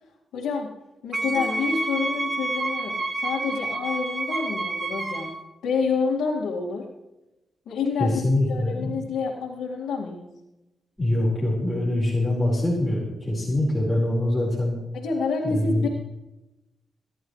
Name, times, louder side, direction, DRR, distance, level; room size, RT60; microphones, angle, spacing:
voice 1, 0.3-0.7 1.0-5.3 5.6-6.8 7.7-8.2 8.5-10.3 14.9-15.9, left 5 dB, 90° left, -5 dB, 2.1 m, -28 dB
Wind instrument woodwind instrument, 1.1-5.4, right 2 dB, 30° right, 1.6 m, -29 dB
sound 1, 1.2-2.8, left 4 dB, 40° left, 1.7 m, -40 dB
voice 2, 8.0-9.0 11.0-14.8 15.4-15.9, left 1 dB, 5° left, -6 dB, 4.6 m, -24 dB
24.0 x 11.0 x 3.2 m, 0.98 s
cardioid pair, 85°, 0 cm